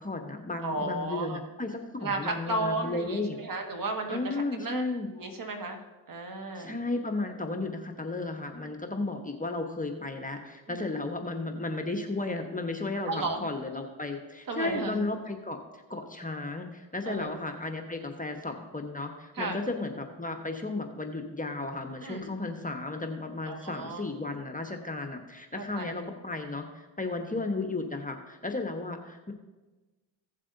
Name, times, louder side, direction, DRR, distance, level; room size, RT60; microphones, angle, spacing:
voice 1, 0.0-3.4 4.1-5.1 6.5-29.3, left 2 dB, 15° left, 4 dB, 1.2 m, -34 dB
voice 2, 0.6-1.4 2.0-4.8 5.1-5.8 6.1-6.8 10.7-10.9 13.1-13.4 14.5-14.9 17.1-17.3 19.4-19.6 22.0-22.3 23.5-24.1 25.6-26.0, right 2 dB, 40° right, 4 dB, 1.9 m, -34 dB
16.0 x 7.4 x 2.7 m, 1.2 s
hypercardioid pair, 55°, 49 cm